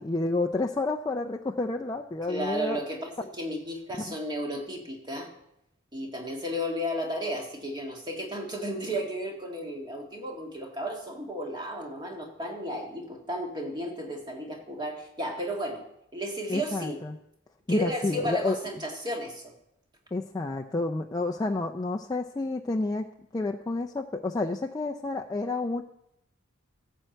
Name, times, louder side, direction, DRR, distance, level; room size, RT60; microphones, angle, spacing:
voice 1, 0.0-2.8 4.1-4.2 16.5-17.2 17.7-18.6 20.1-23.1 23.3-25.8, left 2 dB, 20° left, 3 dB, 0.4 m, -29 dB
voice 2, 2.3-5.3 5.9-15.8 16.1-17.0 17.7-19.5, equal, 20° right, 0 dB, 1.9 m, -33 dB
13.5 x 4.6 x 7.8 m, 0.80 s
head